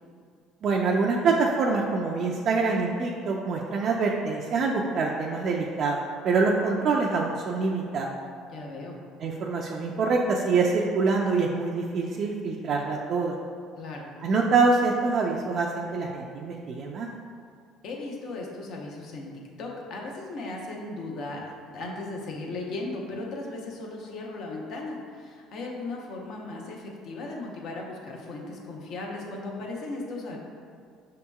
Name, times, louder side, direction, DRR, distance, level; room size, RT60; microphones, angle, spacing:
voice 1, 0.6-8.1 9.2-13.4 14.2-17.1, right 4 dB, 50° right, -1 dB, 0.3 m, -25 dB
voice 2, 8.5-9.0 13.8-14.1 17.8-19.3 19.6-30.4, left 2 dB, 60° left, -1 dB, 0.7 m, -37 dB
6.1 x 2.8 x 2.3 m, 2.2 s
cardioid pair, 105°, 0 cm